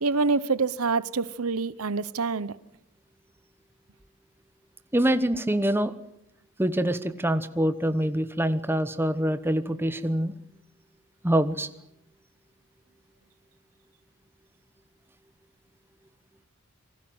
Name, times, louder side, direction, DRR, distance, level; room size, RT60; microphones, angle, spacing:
voice 1, 0.0-2.6, right 4 dB, 80° right, 0.9 m, -26 dB
voice 2, 4.9-5.9 6.6-10.3 11.2-11.7, right 1 dB, 10° right, 1.0 m, -25 dB
28.0 x 20.0 x 7.9 m
head